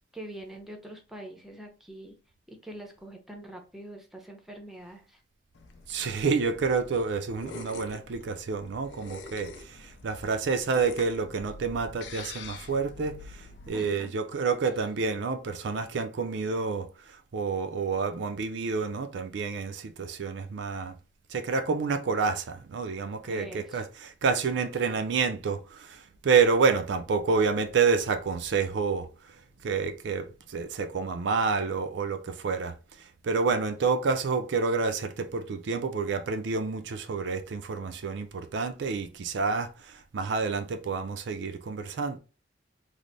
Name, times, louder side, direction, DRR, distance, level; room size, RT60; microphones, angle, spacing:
voice 1, 0.1-2.2 2.5-5.2 13.7-14.1 23.3-23.8, right 1 dB, ahead, 0.6 m, -44 dB
sound 1, 5.5-13.7, left 3 dB, 65° left, 0.5 m, -45 dB
voice 2, 5.9-20.9 21.3-42.2, right 5 dB, 65° right, 0.4 m, -29 dB
3.3 x 2.0 x 3.9 m
head